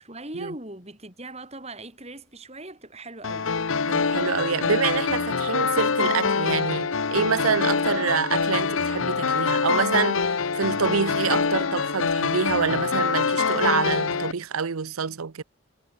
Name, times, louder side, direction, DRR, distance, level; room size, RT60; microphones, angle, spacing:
voice 1, 0.0-3.5, right 2 dB, 30° right, 6.4 m, -40 dB
sound 1, 3.2-14.3, left 5 dB, 70° left, 0.9 m, -25 dB
voice 2, 3.9-15.4, right 6 dB, 80° right, 0.7 m, -26 dB
head